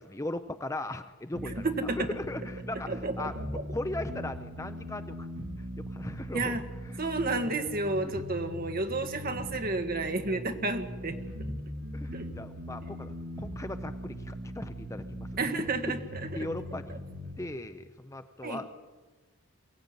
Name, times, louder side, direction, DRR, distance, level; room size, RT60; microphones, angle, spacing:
voice 1, 0.0-1.7 1.9-3.3 3.7-5.3 5.6-6.6 8.1-8.2 11.9-15.3 16.3-17.0 17.4-18.7, left 1 dB, 15° left, 10 dB, 0.6 m, -38 dB
sound 1, 1.3-17.3, equal, 65° right, 3.3 m, -40 dB
voice 2, 1.4-2.1 2.9-3.7 6.3-6.6 7.0-11.2 12.1-12.3 15.4-16.5 18.4-18.6, right 2 dB, 40° right, 6 dB, 1.7 m, -31 dB
23.0 x 15.5 x 9.5 m, 1.3 s
head